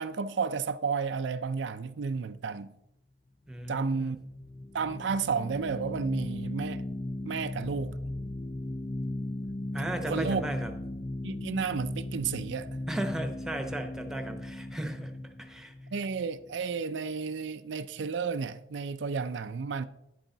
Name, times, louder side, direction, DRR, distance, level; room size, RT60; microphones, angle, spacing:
voice 1, 0.0-2.7 3.7-4.2 4.7-6.8 7.2-8.0 10.1-10.5 11.2-12.7 15.9-19.8, right 5 dB, 75° right, 0.5 m, -32 dB
voice 2, 3.5-4.2 9.7-10.7 12.9-15.7, right 1 dB, 5° right, 0.9 m, -36 dB
sound 1, 4.0-16.8, left 1 dB, 20° left, 0.4 m, -37 dB
11.0 x 8.6 x 3.9 m
head